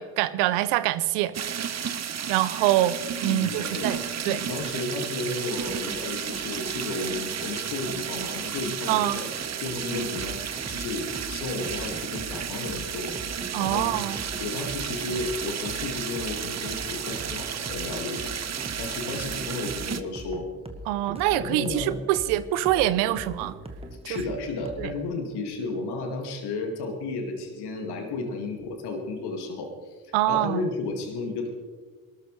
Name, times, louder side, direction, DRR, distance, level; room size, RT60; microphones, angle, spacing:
voice 1, 0.0-1.7 2.3-3.0 3.2-4.0 4.3-4.4 8.9-9.2 13.5-14.2 20.9-23.5 24.1-24.2 24.8-24.9 30.1-30.7, right 15 dB, 75° right, 16 dB, 0.7 m, -25 dB
sound 1, 1.3-20.0, right 8 dB, 40° right, 0.9 m, -33 dB
voice 2, 3.2-9.3 9.6-10.4 10.7-13.1 13.6-13.9 14.4-18.3 18.8-20.5 21.2-21.9 24.0-31.5, left 3 dB, 70° left, 3 dB, 2.3 m, -33 dB
sound 2, 5.7-24.9, right 1 dB, 15° right, 1.8 m, -41 dB
22.5 x 13.0 x 3.3 m, 1.5 s
hypercardioid pair, 40°, 41 cm